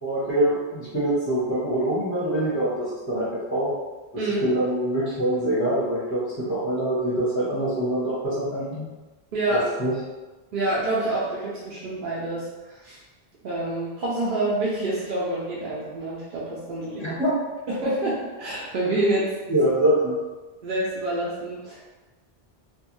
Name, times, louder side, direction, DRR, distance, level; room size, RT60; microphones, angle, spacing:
voice 1, 0.0-3.7 4.1-8.9 9.5-9.9 17.0-17.4 19.5-20.2, right 1 dB, 20° left, -10 dB, 0.6 m, -24 dB
voice 2, 9.3-9.7 10.5-13.0 13.4-17.2 17.7-19.3 20.6-21.8, right 2 dB, 60° right, -6 dB, 0.7 m, -27 dB
2.4 x 2.2 x 3.0 m, 1.2 s
omnidirectional pair, 1.1 m